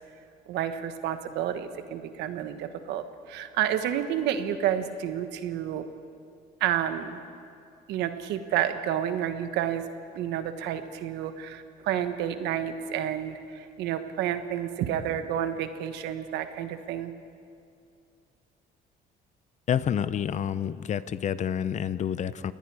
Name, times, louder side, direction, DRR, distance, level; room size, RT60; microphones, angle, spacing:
voice 1, 0.5-5.8 6.6-7.2 7.9-9.8 10.1-17.1, right 10 dB, 85° right, 9 dB, 1.3 m, -30 dB
voice 2, 19.7-22.5, left 9 dB, 45° left, 15 dB, 0.7 m, -28 dB
28.5 x 19.0 x 4.8 m, 2.4 s
cardioid pair, 110°, 17 cm